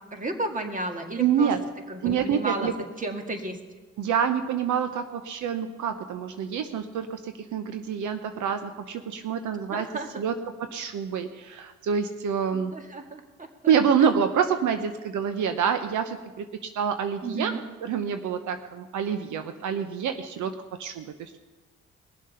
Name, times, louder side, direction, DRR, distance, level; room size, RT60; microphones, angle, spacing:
voice 1, 0.1-1.5 1.9-2.7 3.0-3.6 9.7-10.1 12.7-13.7 14.0-14.1 17.2-17.6, right 2 dB, 25° right, 4 dB, 2.0 m, -33 dB
voice 2, 1.2-1.6 2.0-2.7 4.0-9.9 10.1-12.7 13.7-16.5 16.8-17.6 17.8-21.4, right 7 dB, 75° right, 8 dB, 0.9 m, -27 dB
21.5 x 7.5 x 5.6 m, 1.3 s
cardioid pair, 90°, 30 cm